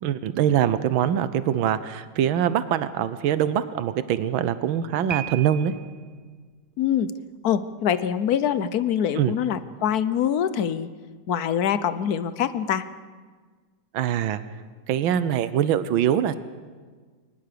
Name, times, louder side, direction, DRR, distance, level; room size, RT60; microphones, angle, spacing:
voice 1, 0.0-5.7 9.2-9.3 13.9-14.4 14.9-16.4, right 10 dB, 85° right, 13 dB, 1.6 m, -23 dB
Piano, 5.1-6.1, right 9 dB, 50° right, 0.5 m, -35 dB
voice 2, 6.8-7.1 7.4-10.9 11.3-12.8, left 9 dB, 60° left, 14 dB, 1.1 m, -24 dB
22.0 x 19.5 x 6.8 m, 1.5 s
omnidirectional pair, 2.1 m